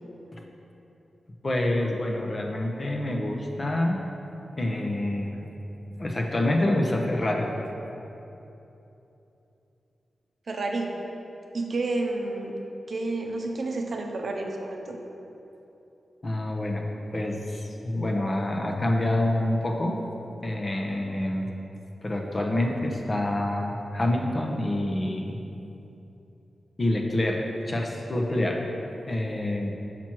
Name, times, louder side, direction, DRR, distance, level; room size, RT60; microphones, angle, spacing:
voice 1, 1.4-4.0 4.6-5.4 6.0-7.5 16.2-20.0 20.4-21.5 22.0-25.4 26.8-28.7 29.1-29.7, left 1 dB, 35° left, 1 dB, 0.7 m, -27 dB
voice 2, 10.5-10.9 11.5-12.5 12.9-15.0, right 2 dB, 55° right, 2 dB, 0.7 m, -30 dB
5.9 x 5.9 x 4.5 m, 3.0 s
wide cardioid pair, 110°, 0 cm